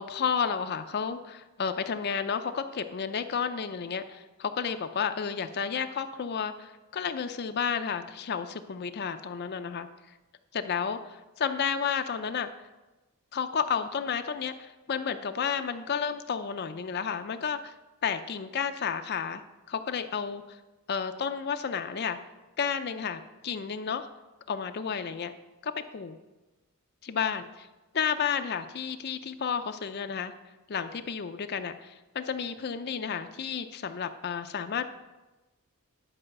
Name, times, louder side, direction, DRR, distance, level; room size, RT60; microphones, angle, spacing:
voice 1, 0.0-9.9 10.5-12.5 13.3-17.7 18.0-19.4 19.7-20.6 20.9-22.2 22.6-24.1 24.5-25.3 25.6-26.2 27.0-27.4 27.9-30.3 30.7-34.9, left 6 dB, 50° left, 9 dB, 0.5 m, -31 dB
11.0 x 4.9 x 6.6 m, 1.1 s
head